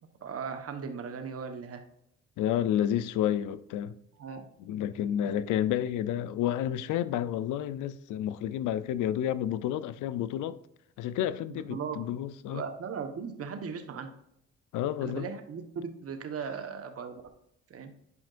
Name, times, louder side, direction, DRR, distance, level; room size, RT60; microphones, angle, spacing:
voice 1, 0.2-1.8 4.2-4.5 5.2-5.3 11.5-12.1 12.5-14.1 15.0-17.2 17.7-17.9, right 6 dB, 50° right, 1.2 m, -38 dB
voice 2, 2.4-4.0 4.7-10.6 11.0-12.6 14.7-15.3, left 11 dB, 85° left, 0.5 m, -30 dB
9.6 x 5.1 x 2.5 m
cardioid pair, 90°, 30 cm